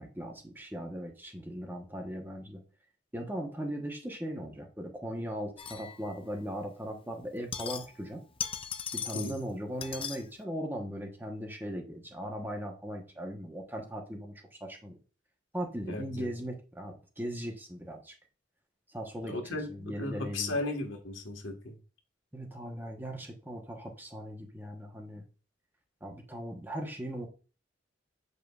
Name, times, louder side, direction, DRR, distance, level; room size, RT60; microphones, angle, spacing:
voice 1, 0.0-2.6 3.1-8.2 8.9-14.3 14.6-15.0 15.5-18.1 18.9-20.6 22.3-25.3 26.0-27.3, equal, 10° right, 1.0 m, -38 dB
sound 1, 5.6-6.4 7.2-8.1 8.4-9.4 9.8-10.2, left 7 dB, 30° left, 0.5 m, -38 dB
voice 2, 15.9-16.3 19.2-21.8, left 2 dB, 85° left, 1.5 m, -36 dB
7.5 x 5.3 x 2.4 m
head